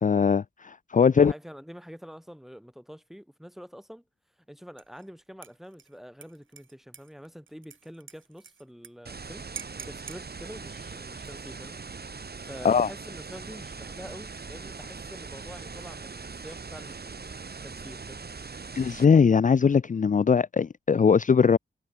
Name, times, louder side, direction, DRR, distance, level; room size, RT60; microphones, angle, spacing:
voice 1, 0.0-1.3 12.6-12.9 18.8-21.6, left 6 dB, 40° left, 0.5 m, -20 dB
voice 2, 1.1-4.0 4.5-9.5 9.8-11.8 12.4-18.3, equal, ahead, 5.9 m, -46 dB
Dishes pots and pans / Liquid, 4.8-5.1 5.4-8.9 9.2-9.3 9.6-10.2 11.1-11.6, right 6 dB, 80° right, 7.7 m, -46 dB
sound 1, 9.1-19.1, right 4 dB, 55° right, 2.9 m, -41 dB
cardioid pair, 50°, 20 cm